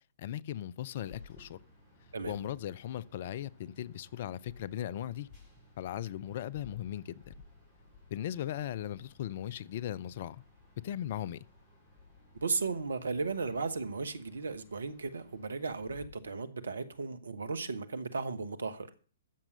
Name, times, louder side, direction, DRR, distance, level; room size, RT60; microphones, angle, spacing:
voice 1, 0.2-1.6 2.2-5.3 5.8-7.3 8.1-10.4 10.8-11.4, left 11 dB, 45° left, 0.5 m, -38 dB
sound 1, 1.0-16.1, left 3 dB, 25° left, 6.4 m, -58 dB
voice 2, 12.4-18.9, right 4 dB, 70° right, 1.3 m, -35 dB
13.0 x 7.3 x 6.6 m
figure-of-eight pair, 120°, 0 cm